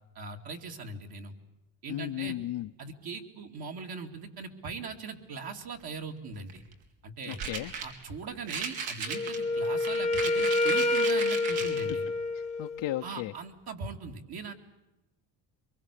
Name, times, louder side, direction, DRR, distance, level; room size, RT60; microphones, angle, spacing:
voice 1, 0.1-1.3 1.8-2.4 2.8-6.6 7.0-7.4 7.8-12.1 13.0-14.5, right 4 dB, 55° right, 2 dB, 2.7 m, -40 dB
voice 2, 1.9-2.7 7.3-7.7 12.3-13.3, left 15 dB, 70° left, 5 dB, 0.9 m, -35 dB
sound 1, 6.4-6.7 7.3-8.0 8.5-11.9, right 5 dB, 75° right, 4.3 m, -36 dB
Wind instrument woodwind instrument, 9.1-13.0, left 2 dB, 15° left, 1.1 m, -28 dB
24.0 x 23.0 x 8.4 m, 0.97 s
cardioid pair, 140°, 46 cm